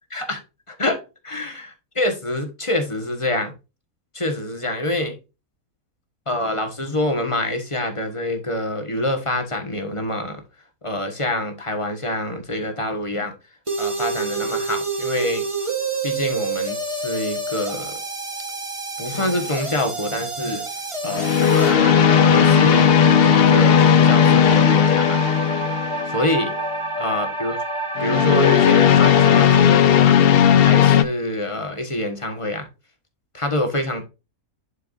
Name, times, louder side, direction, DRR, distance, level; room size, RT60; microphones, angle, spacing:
voice 1, 0.7-1.0 1.2-1.5 1.9-3.5 4.1-5.2 6.3-10.4 10.8-13.3 13.8-15.5 16.0-18.0 19.0-20.6 21.0-21.4 22.2-23.0 23.3-25.2 26.1-26.5 27.0-27.6 28.0-30.2 30.6-32.7 33.3-34.1, left 1 dB, 20° left, 1.4 m, -26 dB
sound 1, 13.7-29.7, right 2 dB, 20° right, 1.2 m, -28 dB
sound 2, 19.1-19.5 21.1-26.2 28.0-31.0, left 8 dB, 65° left, 0.6 m, -15 dB
11.0 x 4.6 x 2.6 m
omnidirectional pair, 1.5 m